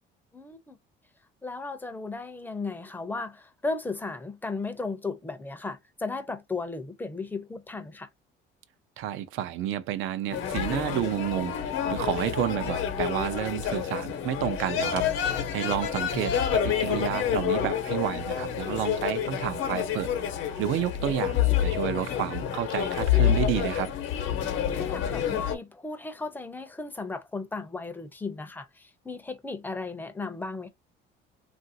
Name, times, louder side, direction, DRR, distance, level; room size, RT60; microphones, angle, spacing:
voice 1, 0.3-0.8 1.4-8.1 24.7-30.7, left 3 dB, 10° left, 0.5 m, -35 dB
voice 2, 9.0-15.1 15.5-20.1 20.6-23.9, right 11 dB, 80° right, 0.5 m, -30 dB
sound 1, 10.3-25.5, left 9 dB, 75° left, 0.8 m, -28 dB
2.9 x 2.5 x 2.6 m
cardioid pair, 130°, 20 cm